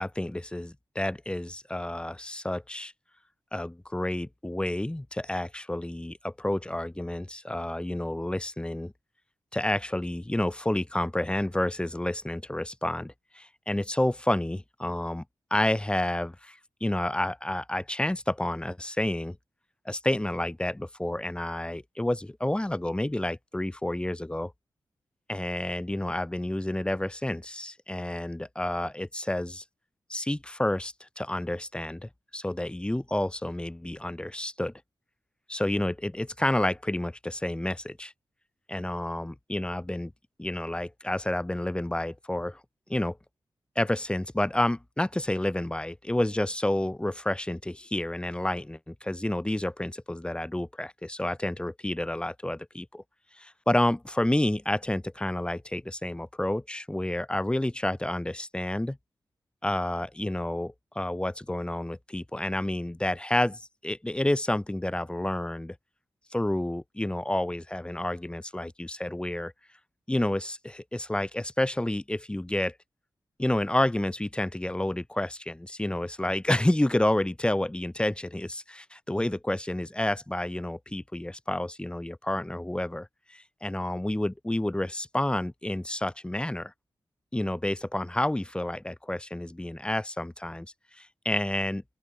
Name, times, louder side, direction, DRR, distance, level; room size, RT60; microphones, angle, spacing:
voice 1, 0.0-2.9 3.5-8.9 9.5-15.2 15.5-19.4 19.8-24.5 25.3-29.6 30.1-34.7 35.5-38.1 38.7-40.1 40.4-42.6 42.9-43.2 43.7-53.0 53.4-59.0 59.6-65.7 66.3-69.5 70.1-72.7 73.4-86.7 87.3-90.7 90.9-91.8, left 1 dB, 10° left, 1.4 m, -30 dB
open air
cardioid pair, 75°, 8 cm